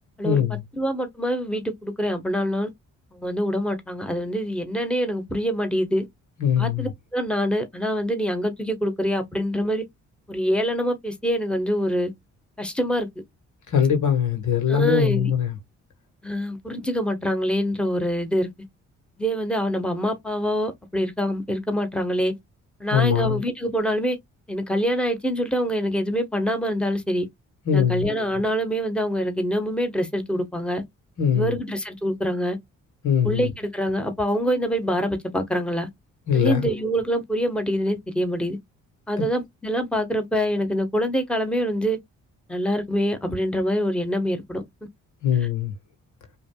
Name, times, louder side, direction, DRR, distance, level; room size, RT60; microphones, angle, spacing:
voice 1, 0.2-0.6 6.4-6.9 13.7-15.6 22.9-23.4 27.7-28.1 31.2-31.6 33.0-33.5 36.3-36.7 39.2-39.3 45.2-45.7, left 8 dB, 70° left, 1.6 m, -22 dB
voice 2, 0.8-2.7 3.1-6.0 6.6-9.8 10.3-12.1 12.6-13.1 14.7-15.3 16.2-18.5 19.2-22.3 22.8-24.2 24.5-27.3 27.7-30.8 31.3-32.6 33.2-35.9 36.3-38.6 39.1-42.0 42.5-44.6, equal, 5° left, 1.3 m, -25 dB
5.2 x 2.8 x 2.3 m
supercardioid pair, 60°, 31 cm